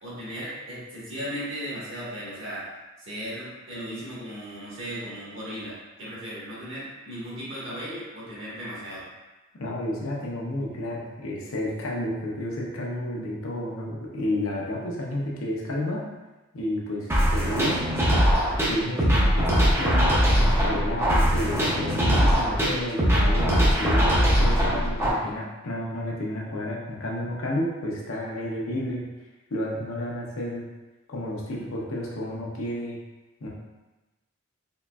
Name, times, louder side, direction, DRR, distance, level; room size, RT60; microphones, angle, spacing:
voice 1, 0.0-2.7 3.0-9.0, equal, 60° right, -8 dB, 1.5 m, -36 dB
voice 2, 9.5-16.0 16.5-17.8 18.7-29.0 29.5-30.7 31.1-33.0 33.4-33.5, left 1 dB, 70° left, -3 dB, 0.8 m, -31 dB
sound 1, 17.1-25.1, equal, 10° right, 0.5 m, -21 dB
3.8 x 3.0 x 2.3 m, 1.1 s
head